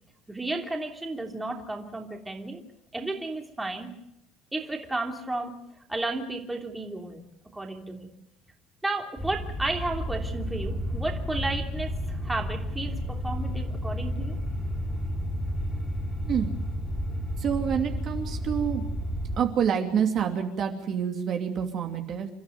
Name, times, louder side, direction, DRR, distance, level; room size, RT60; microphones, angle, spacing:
voice 1, 0.3-2.6 2.9-3.9 4.5-5.5 5.9-7.2 7.5-8.1 8.8-14.4, right 2 dB, 5° right, 3 dB, 3.0 m, -33 dB
sound 1, 9.2-19.4, equal, 10° left, 3.9 m, -31 dB
voice 2, 16.2-16.6 17.4-18.9 19.4-22.3, right 8 dB, 35° right, 4 dB, 2.8 m, -27 dB
29.5 x 14.5 x 9.4 m, 0.82 s
cardioid pair, 170°, 0 cm